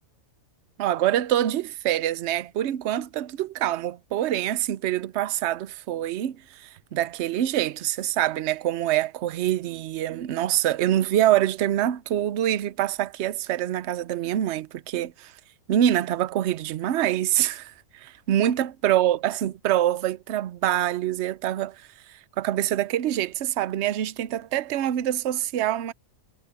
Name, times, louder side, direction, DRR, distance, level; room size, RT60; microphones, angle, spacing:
voice 1, 0.8-15.3 15.7-21.8 22.4-25.9, right 12 dB, 60° right, 0.8 m, -25 dB
omnidirectional pair, 1.5 m